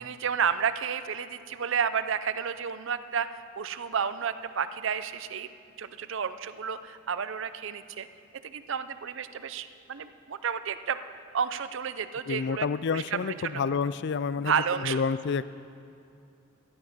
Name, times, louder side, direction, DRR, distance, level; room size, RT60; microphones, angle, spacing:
voice 1, 0.0-3.3 3.6-5.5 5.8-8.1 8.4-11.0 11.3-13.6 14.4-15.0, right 7 dB, 65° right, 12 dB, 0.5 m, -31 dB
voice 2, 12.3-15.4, left 5 dB, 55° left, 16 dB, 0.4 m, -29 dB
14.5 x 11.5 x 5.4 m, 2.5 s
head